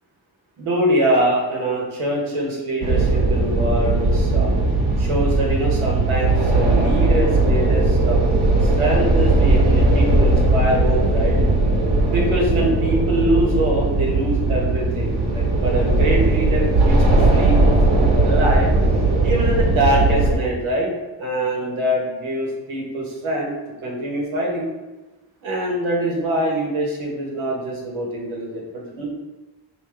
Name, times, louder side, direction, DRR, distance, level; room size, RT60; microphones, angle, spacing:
voice 1, 0.6-4.5 5.0-8.2 8.6-11.4 12.0-18.7 19.2-20.9 21.2-23.5 23.8-24.7 25.4-29.1, right 1 dB, 85° right, -2 dB, 1.1 m, -24 dB
sound 1, 2.8-20.3, right 2 dB, 60° right, 1.0 m, -18 dB
3.5 x 2.8 x 3.3 m, 1.1 s
cardioid pair, 70°, 47 cm